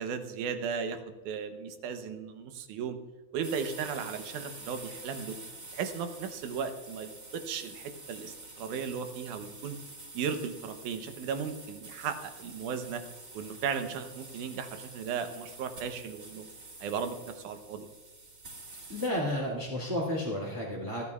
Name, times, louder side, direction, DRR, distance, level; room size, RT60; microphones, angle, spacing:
voice 1, 0.0-3.0 3.3-5.4 5.7-9.8 10.1-13.0 13.3-16.5 16.8-17.9, right 6 dB, 85° right, 7 dB, 2.4 m, -36 dB
sound 1, 3.4-19.1, right 2 dB, 30° right, 1.9 m, -48 dB
voice 2, 18.9-21.0, left 1 dB, 10° right, -6 dB, 1.8 m, -32 dB
27.5 x 9.7 x 2.4 m, 1.2 s
omnidirectional pair, 3.5 m